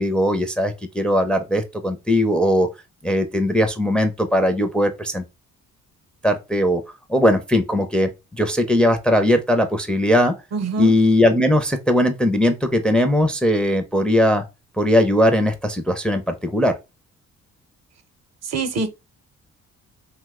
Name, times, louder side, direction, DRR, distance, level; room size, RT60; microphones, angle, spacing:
voice 1, 0.0-2.7 3.0-5.3 6.2-6.8 7.1-10.3 10.8-14.4 14.8-16.7, left 1 dB, 5° left, 0.4 m, -19 dB
voice 2, 10.5-10.9 18.5-18.9, right 3 dB, 60° right, 0.7 m, -24 dB
2.8 x 2.1 x 3.5 m
cardioid pair, 90°, 30 cm